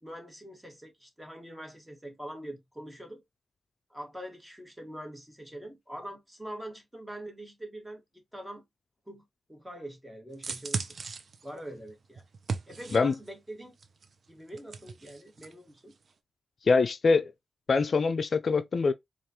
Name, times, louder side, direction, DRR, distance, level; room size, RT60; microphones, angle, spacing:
voice 1, 0.0-3.2 3.9-8.0 8.3-8.6 9.1-9.2 9.5-10.9 11.4-12.2 12.7-13.7 14.3-15.9, right 1 dB, 10° right, 1.6 m, -43 dB
sound 1, 10.3-13.3 13.8-15.5 15.8-15.9, right 4 dB, 60° right, 0.6 m, -37 dB
voice 2, 16.7-17.3 17.7-18.9, left 4 dB, 55° left, 0.3 m, -24 dB
4.5 x 2.4 x 2.8 m
cardioid pair, 60°, 0 cm